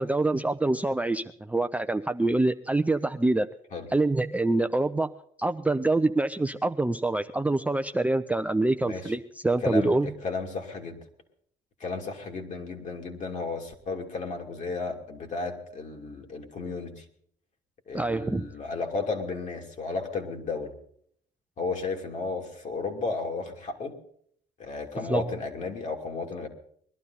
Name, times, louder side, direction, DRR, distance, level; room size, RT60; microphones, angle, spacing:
voice 1, 0.0-3.5 3.9-5.1 5.4-10.1 17.9-18.4 25.1-25.3, right 2 dB, 10° right, 8 dB, 0.5 m, -25 dB
voice 2, 8.8-9.1 9.6-11.0 11.8-17.0 17.9-20.7 21.6-24.0 24.6-26.5, left 4 dB, 45° left, 3 dB, 2.9 m, -33 dB
21.0 x 12.0 x 4.1 m, 0.64 s
cardioid pair, 110°, 17 cm